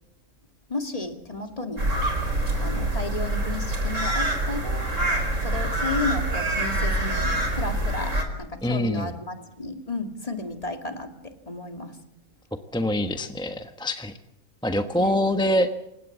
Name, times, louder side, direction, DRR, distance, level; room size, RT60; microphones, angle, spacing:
voice 1, 0.7-1.9 2.6-5.0 5.4-12.0 15.0-15.2, left 2 dB, 25° left, 6 dB, 2.5 m, -33 dB
sound 1, 1.8-8.2, right 1 dB, 65° right, 4.6 m, -25 dB
voice 2, 8.6-9.1 12.7-14.1 14.6-15.7, left 1 dB, 5° left, 7 dB, 1.0 m, -24 dB
28.0 x 17.0 x 7.2 m, 0.88 s
omnidirectional pair, 1.4 m